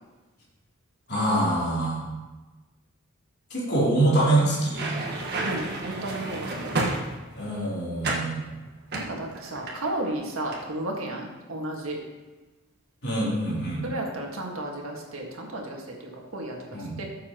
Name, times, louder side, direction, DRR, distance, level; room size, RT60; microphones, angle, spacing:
voice 1, 1.1-2.0 3.5-4.8 7.3-8.5 13.0-13.8 16.7-17.0, right 1 dB, 55° left, -6 dB, 3.5 m, -24 dB
sound 1, 4.6-7.5 8.0-8.3 8.9-10.1 10.4-10.6, right 2 dB, 50° right, 1.6 m, -31 dB
voice 2, 5.4-6.7 8.9-12.0 13.8-16.6 17.0-17.1, right 1 dB, 85° right, 0 dB, 1.9 m, -33 dB
14.5 x 7.3 x 3.1 m, 1.2 s
head